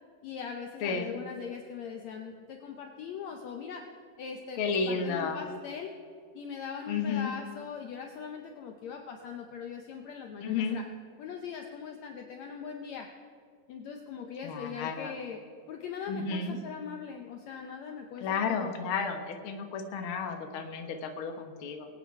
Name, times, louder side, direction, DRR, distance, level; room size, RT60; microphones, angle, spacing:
voice 1, 0.2-3.9 4.2-5.9 6.3-10.9 11.2-13.1 13.7-15.4 15.7-18.7, left 6 dB, 70° left, 4 dB, 1.8 m, -41 dB
voice 2, 0.8-1.2 4.6-5.4 6.9-7.3 10.4-10.8 14.4-15.1 16.1-16.6 18.2-21.9, left 5 dB, 55° left, 4 dB, 1.6 m, -32 dB
22.5 x 9.1 x 4.8 m, 2.3 s
omnidirectional pair, 3.8 m